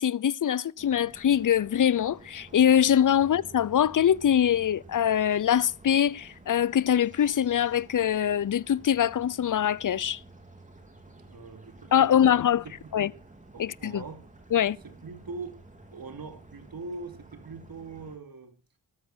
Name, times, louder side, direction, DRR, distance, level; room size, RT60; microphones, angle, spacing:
voice 1, 0.0-10.2 11.9-12.6 12.9-13.1 13.6-14.0 14.5-14.8, left 9 dB, 50° left, 0.6 m, -23 dB
sound 1, 0.8-18.2, right 2 dB, 20° right, 3.5 m, -51 dB
voice 2, 11.0-12.3 12.6-12.9 13.5-14.3 14.8-15.6 15.9-18.6, right 3 dB, 55° right, 2.9 m, -42 dB
14.0 x 13.0 x 4.5 m
cardioid pair, 70°, 41 cm